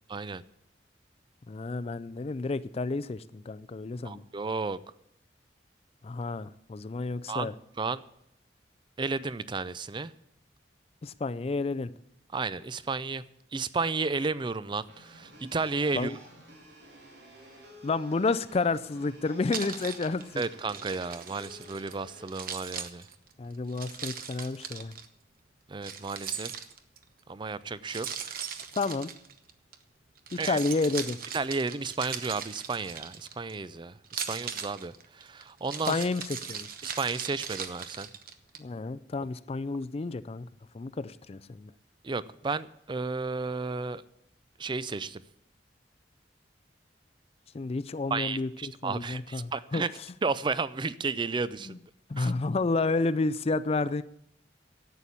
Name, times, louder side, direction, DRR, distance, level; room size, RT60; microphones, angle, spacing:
voice 1, 0.1-0.4 4.0-4.8 7.3-7.5 7.8-8.0 9.0-10.1 12.3-13.2 13.5-16.1 20.4-23.1 25.7-26.6 27.3-28.5 30.3-30.6 31.3-36.0 36.8-38.1 42.0-44.0 44.6-45.2 48.1-49.9 50.2-51.7 52.1-52.3, right 4 dB, 25° right, 0.4 m, -33 dB
voice 2, 1.5-4.2 6.0-7.5 11.0-11.9 15.9-16.2 17.8-20.4 23.4-24.9 28.8-29.1 30.4-31.2 35.9-36.2 36.5-36.7 38.6-40.5 40.7-41.7 47.5-49.8 51.7-51.8 52.1-54.0, left 3 dB, 35° left, 0.4 m, -30 dB
sound 1, 14.9-22.2, equal, 80° right, 3.1 m, -52 dB
Keys jangling, 19.5-21.9 22.3-25.1 25.8-27.0 27.9-29.8 30.2-33.6 34.0-38.6, right 7 dB, 55° right, 1.0 m, -39 dB
11.5 x 8.3 x 8.4 m
head